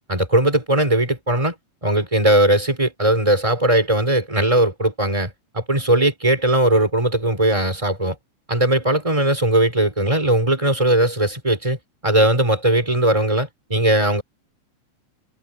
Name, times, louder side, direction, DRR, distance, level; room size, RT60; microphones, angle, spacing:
voice 1, 0.1-1.5 1.8-8.1 8.5-11.8 12.0-14.2, right 1 dB, 10° right, 4.7 m, -19 dB
omnidirectional pair, 3.4 m